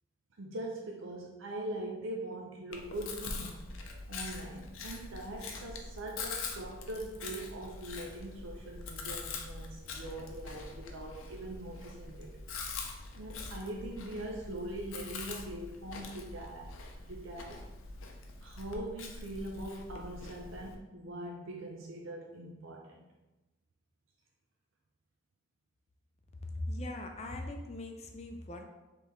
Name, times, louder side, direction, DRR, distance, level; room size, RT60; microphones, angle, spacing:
voice 1, 0.4-3.6 4.1-12.4 12.8-16.7 17.1-17.6 18.4-23.0, right 1 dB, 70° right, 0 dB, 0.5 m, -42 dB
Chewing mastication, 2.7-20.7, left 4 dB, 80° left, 0.6 m, -44 dB
voice 2, 26.5-28.6, left 1 dB, 30° left, 4 dB, 0.5 m, -40 dB
4.9 x 3.4 x 3.1 m, 1.1 s
head